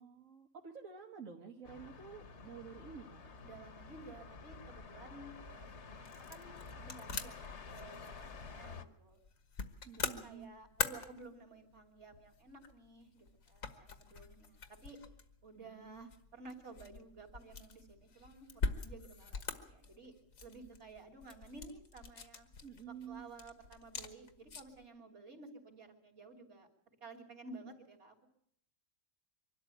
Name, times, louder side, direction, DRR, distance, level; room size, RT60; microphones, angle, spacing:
voice 1, 0.0-3.2 9.9-10.5 15.6-16.1 22.6-23.3, right 6 dB, 75° right, 0 dB, 1.8 m, -50 dB
sound 1, 1.6-8.8, left 4 dB, 60° left, 1.4 m, -50 dB
voice 2, 3.4-9.2 10.0-15.0 15.4-20.1 20.4-22.5 22.9-26.7 27.0-28.2, right 3 dB, 55° right, 1 dB, 3.5 m, -54 dB
sound 2, 5.3-24.9, left 4 dB, 80° left, 1.8 m, -45 dB
24.0 x 12.5 x 9.1 m, 0.68 s
omnidirectional pair, 1.4 m